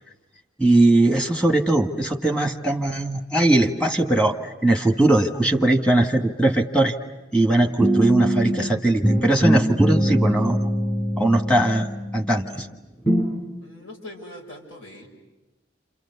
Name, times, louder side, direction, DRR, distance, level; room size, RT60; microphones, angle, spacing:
voice 1, 0.6-7.0 7.3-10.6 11.2-11.9 12.1-12.7, right 1 dB, 5° left, 3 dB, 1.4 m, -20 dB
sound 1, 7.8-8.7 9.0-12.6 13.1-13.3, equal, 25° left, 6.3 m, -22 dB
voice 2, 13.6-15.1, left 1 dB, 90° left, 0 dB, 6.2 m, -41 dB
28.5 x 28.0 x 6.9 m, 1.0 s
head